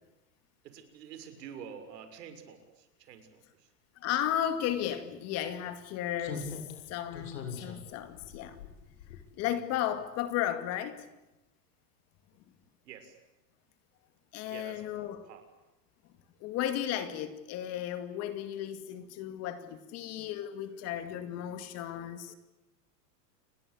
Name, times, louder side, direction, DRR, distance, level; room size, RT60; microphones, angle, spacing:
voice 1, 0.6-3.7 12.8-13.2 14.5-15.4, right 7 dB, 80° right, 6.8 m, -48 dB
voice 2, 4.0-6.6 6.9-8.6 9.3-11.0 14.3-15.2 16.4-22.3, left 11 dB, 30° left, 2.3 m, -34 dB
Slam, 4.8-4.9 6.2-9.7 10.0-10.2, left 5 dB, 85° left, 7.2 m, -43 dB
29.5 x 21.5 x 8.6 m
supercardioid pair, 170°, 49 cm